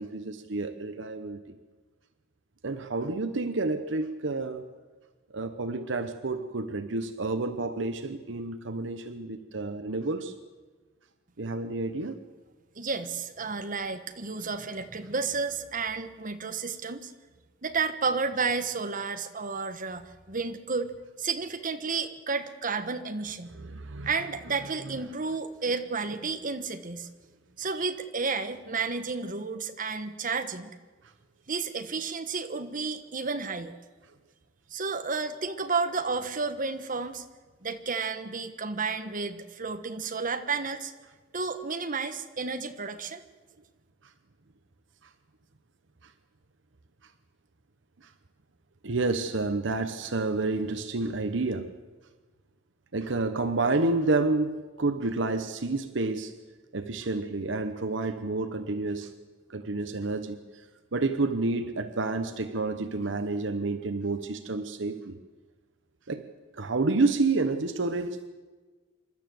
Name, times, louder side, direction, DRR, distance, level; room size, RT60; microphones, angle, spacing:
voice 1, 0.0-1.6 2.6-4.7 5.3-10.3 11.4-12.1 23.5-24.1 24.8-24.9 27.7-27.9 46.0-46.1 48.0-48.1 48.8-51.7 52.9-56.3 56.7-59.1 59.5-60.7 60.9-65.2 66.1-66.2 66.5-68.3, right 3 dB, 70° right, 9 dB, 1.0 m, -29 dB
voice 2, 12.8-17.1 17.6-20.9 21.2-23.5 24.0-27.1 27.6-30.7 31.5-33.8 34.7-37.2 37.6-40.9 41.3-43.2, right 4 dB, 45° right, 8 dB, 1.3 m, -31 dB
27.5 x 12.5 x 7.8 m, 1.3 s
head